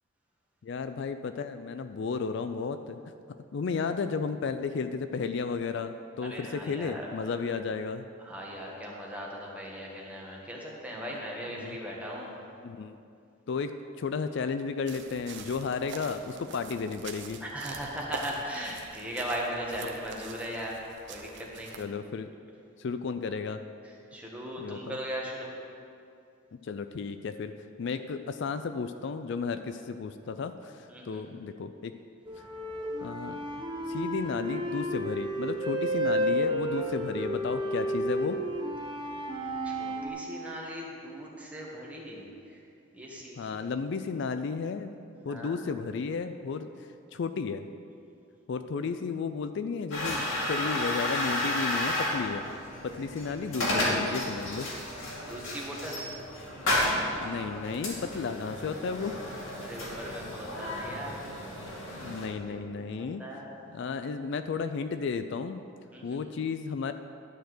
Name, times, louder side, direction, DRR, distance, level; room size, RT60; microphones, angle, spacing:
voice 1, 0.6-3.0 3.5-8.0 11.5-11.8 12.6-13.0 13.5-17.4 19.8-19.9 21.8-22.3 22.8-23.6 24.6-25.0 26.6-31.9 33.0-33.4 33.9-38.4 43.4-44.9 45.2-47.7 48.5-52.4 52.8-54.7 57.2-59.2 61.9-63.3 63.7-65.6 66.0-66.9, left 5 dB, 60° left, 9 dB, 0.4 m, -33 dB
voice 2, 6.2-7.1 8.2-12.3 17.4-20.8 21.1-21.7 24.1-25.5 30.9-31.2 39.6-42.2 42.5-42.6 42.9-43.6 45.3-45.6 55.1-56.0 59.6-61.2 62.5-63.6 65.9-66.2, equal, 5° right, -3 dB, 1.5 m, -38 dB
sound 1, 14.9-21.9, right 4 dB, 60° right, 0.7 m, -45 dB
sound 2, 32.2-40.1, equal, 25° right, 1.0 m, -31 dB
sound 3, 49.9-62.3, left 1 dB, 80° left, 2.4 m, -32 dB
12.0 x 4.5 x 7.8 m, 2.5 s
head